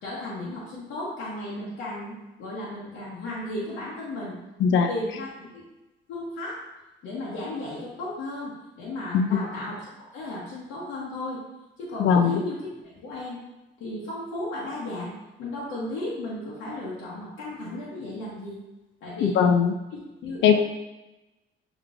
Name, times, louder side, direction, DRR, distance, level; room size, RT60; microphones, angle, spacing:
voice 1, 0.0-4.3 4.7-5.6 6.1-6.6 7.0-9.8 10.1-11.4 11.8-13.4 13.8-15.1 15.4-18.6 19.0-19.4 19.9-20.6, left 1 dB, 90° left, -7 dB, 1.1 m, -35 dB
voice 2, 12.0-12.4 19.2-19.7 20.4-20.6, left 7 dB, 70° left, 6 dB, 0.4 m, -20 dB
6.6 x 3.0 x 2.5 m, 1.0 s
cardioid pair, 90°, 20 cm